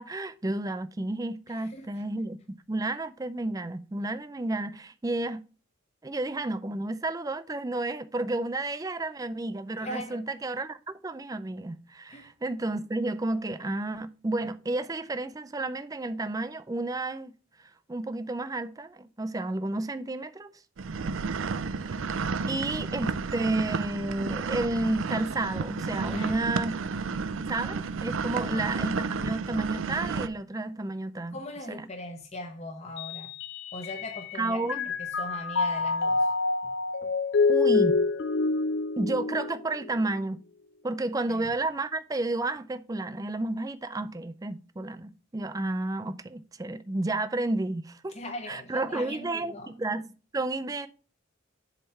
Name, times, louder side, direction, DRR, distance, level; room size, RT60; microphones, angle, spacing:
voice 1, 0.0-2.4 2.7-5.4 6.0-17.3 17.9-20.5 22.1-22.2 22.5-26.8 27.5-31.4 31.7-31.9 34.4-34.9 37.5-38.0 39.0-40.4 40.8-48.1 48.5-50.9, right 2 dB, 15° right, 0.4 m, -31 dB
voice 2, 1.5-2.0 9.8-10.2 12.1-12.3 26.1-26.5 28.3-28.6 31.3-33.3 33.7-36.3 37.0-37.1 41.3-41.5 48.1-49.7, left 1 dB, 35° left, 0.9 m, -40 dB
sound 1, 20.8-30.3, right 4 dB, 75° right, 0.5 m, -31 dB
Mallet percussion, 33.0-34.3 34.7-40.1, left 4 dB, 60° left, 0.5 m, -27 dB
7.7 x 3.3 x 5.5 m
head